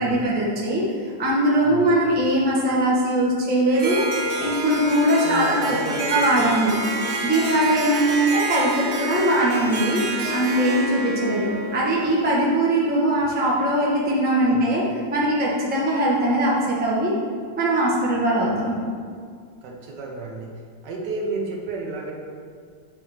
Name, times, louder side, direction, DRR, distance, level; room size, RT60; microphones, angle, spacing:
voice 1, 0.0-4.1 4.4-5.7 6.1-6.8 7.2-10.0 10.3-14.8 15.1-17.1 17.6-18.8, right 1 dB, 10° right, -5 dB, 0.6 m, -21 dB
voice 2, 1.6-1.9 5.2-6.3 14.5-14.7 19.6-22.1, right 3 dB, 70° right, 0 dB, 1.4 m, -31 dB
Harp, 3.7-12.5, right 2 dB, 55° right, 0.9 m, -28 dB
8.3 x 2.9 x 4.7 m, 2.1 s
omnidirectional pair, 2.0 m